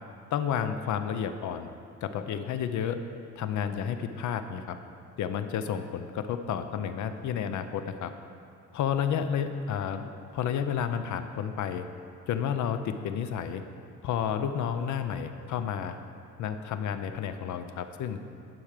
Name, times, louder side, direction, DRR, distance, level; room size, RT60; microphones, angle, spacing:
voice 1, 0.3-1.7 2.0-3.0 3.4-4.8 5.2-8.1 8.7-11.9 12.3-13.6 14.0-16.0 16.4-18.2, left 8 dB, 75° left, 9 dB, 0.7 m, -31 dB
10.5 x 6.2 x 5.0 m, 2.4 s
cardioid pair, 90°, 30 cm